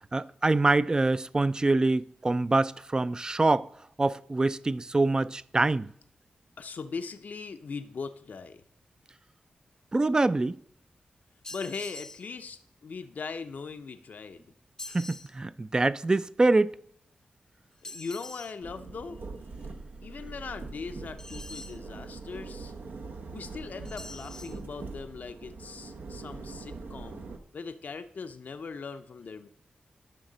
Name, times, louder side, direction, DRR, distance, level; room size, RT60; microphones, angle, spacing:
voice 1, 0.1-3.7 4.0-5.9 9.9-10.6 14.9-16.8, right 2 dB, 25° right, 0.3 m, -25 dB
voice 2, 6.6-8.6 11.5-14.4 17.8-19.2 20.0-22.7 23.3-27.2 27.5-29.5, left 5 dB, 65° left, 0.5 m, -40 dB
sound 1, 11.4-12.3 14.8-15.3 17.8-18.5 21.2-21.8 23.8-24.6, left 2 dB, 20° left, 0.6 m, -44 dB
sound 2, 18.6-27.4, right 3 dB, 80° right, 0.9 m, -42 dB
11.0 x 5.9 x 3.9 m
wide cardioid pair, 90°, 3 cm